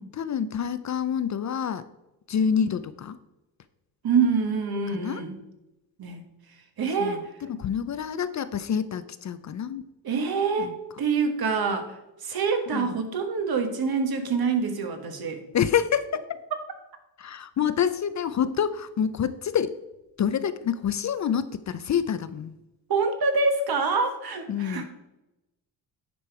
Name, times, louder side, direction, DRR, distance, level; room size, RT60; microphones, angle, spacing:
voice 1, 0.1-1.9 2.3-3.2 4.9-5.2 7.0-9.8 10.6-10.8 12.7-13.0 15.5-16.4 17.2-19.8 20.2-22.6 24.5-24.8, left 8 dB, 45° left, 13 dB, 0.5 m, -27 dB
voice 2, 4.0-5.3 6.0-6.2 6.8-7.3 10.0-11.9 12.2-15.4 22.9-24.8, right 5 dB, 60° right, 7 dB, 1.4 m, -26 dB
9.9 x 5.2 x 4.6 m, 0.95 s
cardioid pair, 110°, 42 cm